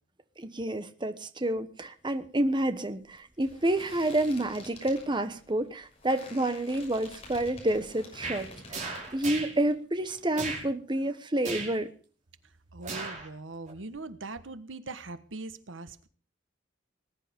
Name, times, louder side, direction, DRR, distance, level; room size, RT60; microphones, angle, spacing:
voice 1, 0.4-11.9, right 1 dB, 25° right, 10 dB, 1.1 m, -29 dB
sound 1, 2.0-9.7 10.0-10.7, left 2 dB, 30° left, 6.3 m, -49 dB
sound 2, 8.2-8.4 8.7-9.5 10.3-10.6 11.4-11.8 12.8-13.3 13.7-13.8, right 4 dB, 40° right, 5.0 m, -36 dB
voice 2, 12.7-16.1, right 3 dB, 90° right, 12 dB, 1.4 m, -41 dB
20.0 x 10.5 x 5.2 m, 0.41 s
head